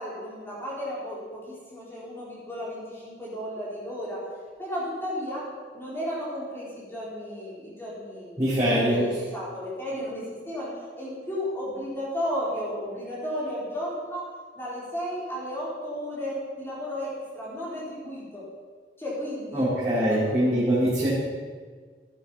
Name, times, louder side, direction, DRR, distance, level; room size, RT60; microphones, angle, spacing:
voice 1, 0.0-4.2 4.6-5.4 5.7-10.7 10.9-14.2 14.5-18.4 19.0-19.7 20.1-20.6 21.0-21.1, equal, 15° left, -7 dB, 4.7 m, -34 dB
voice 2, 8.4-9.1 19.5-21.1, equal, 15° right, -14 dB, 4.7 m, -23 dB
13.5 x 9.9 x 5.8 m, 1.5 s
head